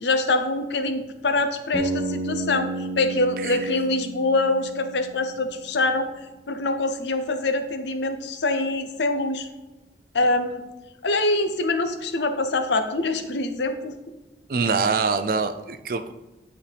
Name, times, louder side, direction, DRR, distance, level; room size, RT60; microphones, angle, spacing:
voice 1, 0.0-6.1 6.5-9.5 10.1-10.6 11.0-13.9, left 2 dB, 85° left, 8 dB, 0.7 m, -24 dB
Bass guitar, 1.7-5.8, right 2 dB, 70° left, 1.4 m, -32 dB
voice 2, 14.5-16.1, right 4 dB, 50° right, 9 dB, 0.4 m, -24 dB
9.7 x 4.3 x 3.4 m, 1.1 s
head